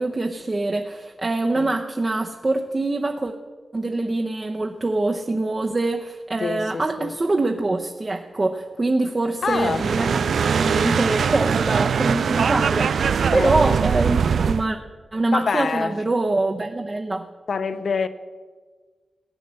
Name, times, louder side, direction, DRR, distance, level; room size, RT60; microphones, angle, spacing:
voice 1, 0.0-3.3 3.7-13.0 13.3-14.8 15.1-17.3, right 2 dB, 25° right, 0.7 m, -24 dB
voice 2, 6.4-7.1 9.4-9.9 13.3-13.6 15.3-16.0 17.5-18.1, left 5 dB, 60° left, 0.8 m, -25 dB
sound 1, 9.5-14.7, right 6 dB, 75° right, 0.3 m, -22 dB
15.5 x 9.9 x 7.5 m
wide cardioid pair, 170°, 0 cm